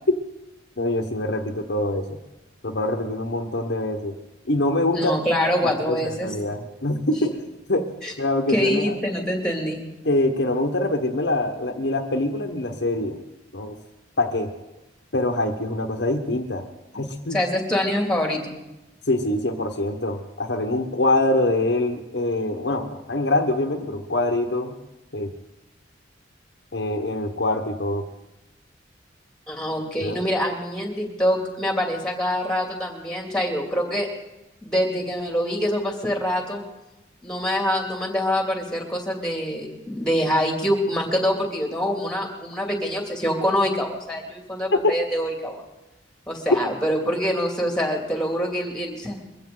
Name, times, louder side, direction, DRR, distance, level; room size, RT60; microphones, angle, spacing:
voice 1, 0.8-2.2 2.6-4.2 4.5-5.1 5.6-7.9 8.2-9.0 10.0-13.2 13.5-13.8 14.2-14.5 15.1-16.7 16.9-17.4 19.1-24.8 25.1-25.3 26.7-28.1 30.0-30.2 44.7-44.9, left 2 dB, 65° left, 4 dB, 1.2 m, -24 dB
voice 2, 4.9-6.3 8.0-8.1 8.5-9.8 17.3-18.6 29.5-34.1 34.6-36.6 37.2-45.6 46.3-49.2, equal, 5° left, 2 dB, 2.5 m, -25 dB
22.5 x 15.5 x 3.9 m, 0.98 s
head